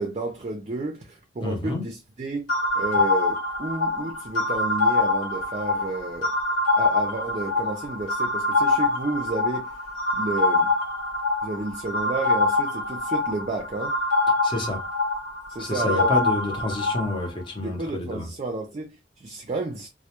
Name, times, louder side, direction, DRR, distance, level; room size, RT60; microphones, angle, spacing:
voice 1, 0.0-2.5 2.8-6.3 6.8-9.8 10.1-10.7 11.4-13.9 15.5-16.3 17.6-19.9, right 3 dB, 35° right, 0.4 m, -31 dB
voice 2, 1.4-1.8 14.4-14.9 15.6-18.3, left 2 dB, 25° left, 0.7 m, -29 dB
sound 1, 2.5-17.3, left 2 dB, 85° left, 0.8 m, -25 dB
2.2 x 2.0 x 2.8 m
head